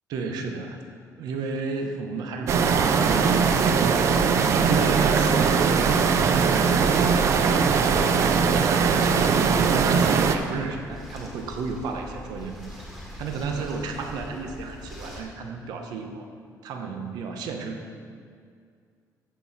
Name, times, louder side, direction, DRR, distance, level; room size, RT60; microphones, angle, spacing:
voice 1, 0.1-0.8 1.2-6.2 8.6-12.7 13.2-16.3 16.6-18.0, right 4 dB, 75° right, 4 dB, 1.0 m, -32 dB
sound 1, 2.5-10.4, right 5 dB, 45° right, 0.5 m, -20 dB
sound 2, 5.8-15.2, left 1 dB, 5° right, 1.5 m, -41 dB
14.0 x 6.0 x 4.2 m, 2.2 s
cardioid pair, 175°, 7 cm